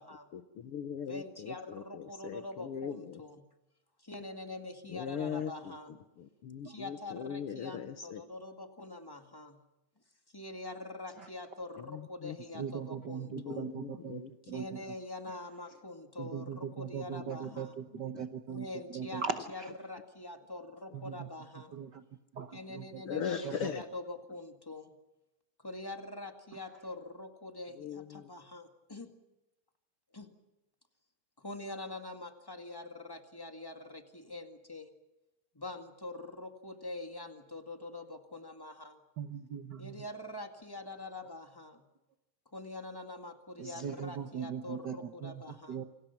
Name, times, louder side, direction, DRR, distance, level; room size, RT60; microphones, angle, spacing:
voice 1, 0.3-3.2 4.8-8.2 11.8-12.6 13.3-14.3 17.1-17.6 17.9-18.3 19.4-19.5 23.0-23.9 27.8-28.3, left 8 dB, 65° left, 9 dB, 1.6 m, -40 dB
voice 2, 1.1-3.4 4.0-5.9 6.6-9.6 10.3-13.7 14.5-17.8 18.5-21.8 22.5-24.9 25.6-29.1 30.1-30.3 31.4-34.9 35.5-39.0 39.8-41.8 42.5-45.8, left 2 dB, 10° left, 5 dB, 1.5 m, -44 dB
voice 3, 12.6-14.2 14.5-14.6 16.2-18.7 18.9-19.7 20.9-21.3 21.7-22.0 22.3-23.5 39.2-39.9 43.6-45.0 45.2-45.4 45.7-45.8, right 7 dB, 70° right, 9 dB, 1.0 m, -39 dB
28.5 x 26.5 x 5.9 m, 0.96 s
omnidirectional pair, 3.4 m